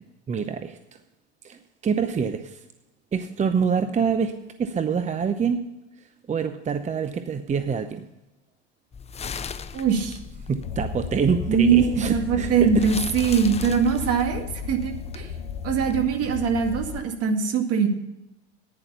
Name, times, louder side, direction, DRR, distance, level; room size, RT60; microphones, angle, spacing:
voice 1, 0.3-0.8 1.4-2.6 3.1-5.6 6.3-8.1 10.5-12.9, right 6 dB, 20° right, 9 dB, 0.7 m, -26 dB
sound 1, 8.9-17.0, left 5 dB, 20° left, 0.7 m, -38 dB
voice 2, 9.7-10.2 11.5-15.3 15.6-17.9, right 6 dB, 50° right, 5 dB, 2.1 m, -22 dB
sound 2, 10.6-17.0, left 7 dB, 90° left, 0.9 m, -35 dB
11.0 x 9.9 x 5.5 m, 0.98 s
hypercardioid pair, 85°, 32 cm